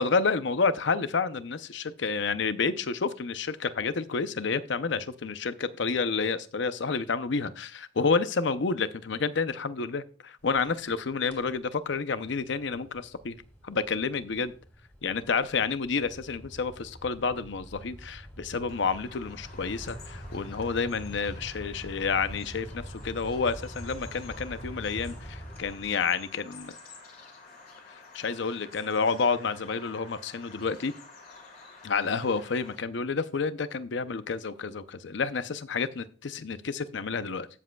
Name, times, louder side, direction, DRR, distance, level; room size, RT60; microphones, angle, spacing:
voice 1, 0.0-13.4 13.6-14.5 15.0-26.7 27.9-30.9 31.8-37.5, left 4 dB, 65° left, 13 dB, 0.6 m, -29 dB
sound 1, 10.4-11.0 11.2-11.6 12.0-26.3, equal, 10° left, 2.4 m, -44 dB
Bird vocalization bird call bird song, 18.7-32.8, left 3 dB, 45° left, 2.6 m, -50 dB
13.5 x 7.5 x 2.3 m, 0.39 s
head